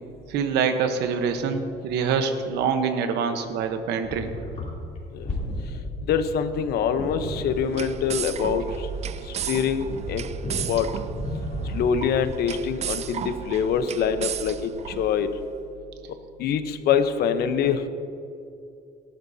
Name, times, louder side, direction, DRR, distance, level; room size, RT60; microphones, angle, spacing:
voice 1, 0.3-4.3, right 6 dB, 85° right, 7 dB, 1.0 m, -25 dB
sound 1, 4.0-12.3, left 1 dB, 45° left, 3.3 m, -34 dB
voice 2, 6.1-8.6 9.4-10.2 10.7-10.9 11.7-14.7 15.0-15.3 16.4-17.9, left 7 dB, 70° left, 9 dB, 0.9 m, -24 dB
sound 2, 7.3-15.4, right 9 dB, 40° right, 0.4 m, -34 dB
18.0 x 11.5 x 2.8 m, 2.6 s
cardioid pair, 110°, 17 cm